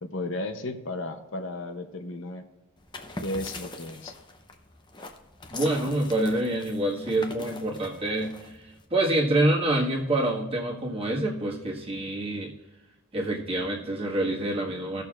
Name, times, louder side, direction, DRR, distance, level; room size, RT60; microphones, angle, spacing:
voice 1, 0.0-2.5 3.2-4.2, left 2 dB, 60° left, 8 dB, 0.7 m, -34 dB
sound 1, 2.8-8.8, left 2 dB, 20° left, 0.7 m, -42 dB
voice 2, 5.5-12.5 13.1-15.0, right 1 dB, 25° right, -3 dB, 1.6 m, -27 dB
17.5 x 6.6 x 2.4 m, 1.1 s
head